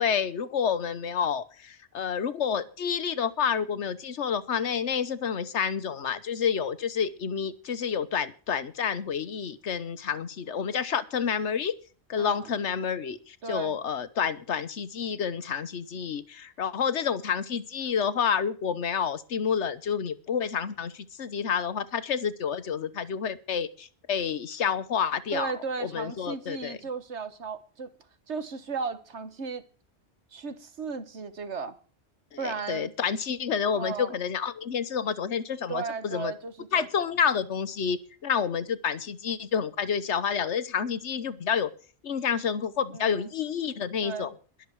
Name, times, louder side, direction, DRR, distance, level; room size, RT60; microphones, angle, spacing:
voice 1, 0.0-11.8 12.1-25.5 25.8-26.8 32.4-36.3 36.7-41.7 42.0-44.3, left 7 dB, 85° left, 1.3 m, -29 dB
voice 2, 12.2-12.5 13.4-13.8 25.3-27.9 28.3-29.6 30.3-31.8 32.4-32.9 33.7-34.1 35.7-37.1 42.9-43.3 44.0-44.3, right 5 dB, 80° right, 1.7 m, -35 dB
22.0 x 7.3 x 4.7 m
omnidirectional pair, 1.2 m